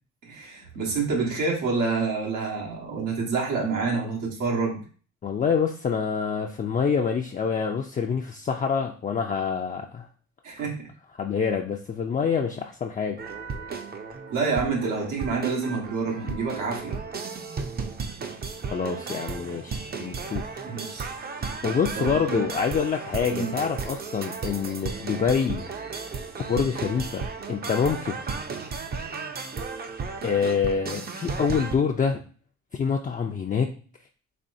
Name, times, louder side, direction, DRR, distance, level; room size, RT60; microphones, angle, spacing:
voice 1, 0.3-4.8 10.4-10.9 14.3-17.0 20.6-21.1 21.9-22.5 23.3-23.5, right 4 dB, 90° right, -2 dB, 1.4 m, -28 dB
voice 2, 5.2-10.1 10.6-10.7 11.2-13.2 18.7-20.5 21.6-25.7 26.5-28.2 30.2-32.2 32.7-33.7, left 6 dB, 30° left, 2 dB, 0.4 m, -26 dB
sound 1, 13.2-31.8, right 5 dB, 30° right, 0.5 m, -34 dB
4.3 x 3.1 x 2.6 m, 0.40 s
cardioid pair, 90°, 30 cm